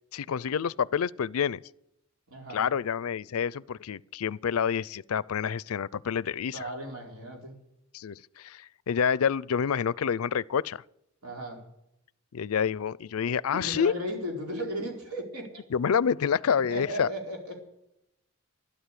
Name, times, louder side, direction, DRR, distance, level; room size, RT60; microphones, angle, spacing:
voice 1, 0.1-1.6 2.5-6.6 7.9-10.8 12.3-13.9 15.7-17.1, left 7 dB, 85° left, 0.4 m, -28 dB
voice 2, 2.3-2.6 6.5-7.6 11.2-11.6 13.5-15.5 16.7-17.6, equal, 90° right, 4.4 m, -36 dB
13.0 x 12.0 x 8.3 m
head